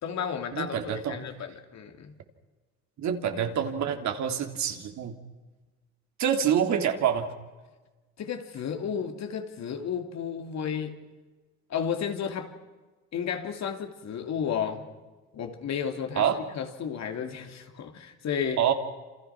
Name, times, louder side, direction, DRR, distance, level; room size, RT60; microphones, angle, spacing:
voice 1, 0.0-2.1 8.2-11.0 11.7-12.5 13.1-14.9 15.3-18.6, left 7 dB, 50° left, 3.2 m, -33 dB
voice 2, 0.5-1.2 3.0-5.2 6.2-7.3 16.1-16.4 18.6-18.7, right 8 dB, 55° right, 3.4 m, -26 dB
28.0 x 27.5 x 6.1 m
supercardioid pair, 90°, 34 cm